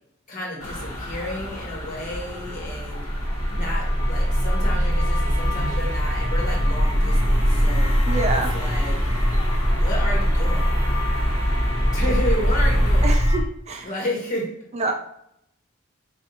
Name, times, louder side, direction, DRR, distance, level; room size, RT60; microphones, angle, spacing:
voice 1, 0.3-3.0 3.5-7.9 8.3-9.0 9.8-10.7 11.9-13.2 13.8-14.5 14.8-14.9, left 1 dB, 40° left, -4 dB, 1.6 m, -32 dB
sound 1, 0.6-13.1, equal, 85° left, 1.0 m, -31 dB
sound 2, 2.7-13.4, equal, 70° right, 1.3 m, -22 dB
voice 2, 8.1-8.5 12.0-12.1 13.0-13.4 13.7-13.9 14.7-14.9, right 3 dB, 30° right, 4 dB, 0.4 m, -26 dB
4.1 x 3.5 x 2.8 m, 0.74 s
head